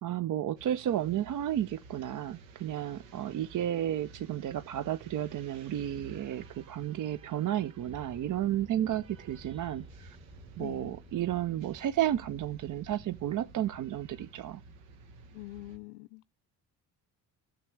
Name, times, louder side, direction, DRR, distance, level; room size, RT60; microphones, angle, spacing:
voice 1, 0.0-10.2 10.6-14.6, right 11 dB, 45° right, 0.6 m, -32 dB
sound 1, 0.6-15.8, right 4 dB, 80° right, 1.3 m, -52 dB
sound 2, 7.8-14.3, left 1 dB, 10° right, 1.7 m, -55 dB
voice 2, 10.6-10.9 15.3-16.3, left 20 dB, 80° left, 0.6 m, -44 dB
15.5 x 7.2 x 3.2 m
hypercardioid pair, 55°, 46 cm